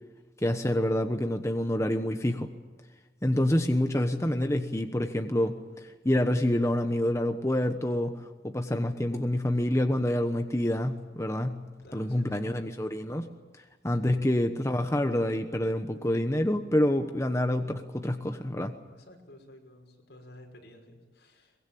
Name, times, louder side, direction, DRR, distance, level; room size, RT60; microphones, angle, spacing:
voice 1, 0.4-2.5 3.2-11.6 11.9-13.3 13.8-18.8, left 1 dB, 15° left, 6 dB, 1.1 m, -27 dB
voice 2, 11.8-12.6 18.9-21.6, left 1 dB, 75° left, 2 dB, 6.0 m, -52 dB
23.5 x 21.5 x 8.7 m, 1.3 s
head